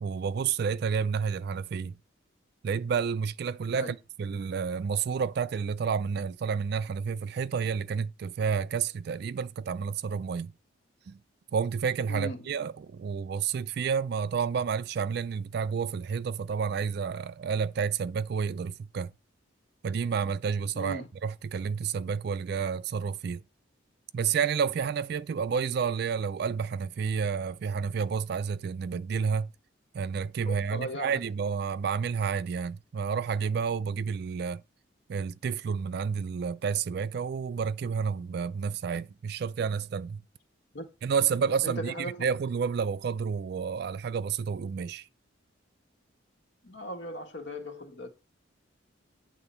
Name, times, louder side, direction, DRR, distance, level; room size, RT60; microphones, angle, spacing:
voice 1, 0.0-2.0 2.6-10.5 11.1-11.2 11.5-19.1 19.8-23.4 24.1-29.5 29.9-34.6 35.1-40.2 41.0-45.1, right 6 dB, 55° right, 0.3 m, -30 dB
voice 2, 12.1-12.6 20.7-21.1 30.5-31.2 40.7-40.8 41.6-42.2 46.6-48.1, equal, 65° left, 1.7 m, -38 dB
8.9 x 3.8 x 6.9 m
head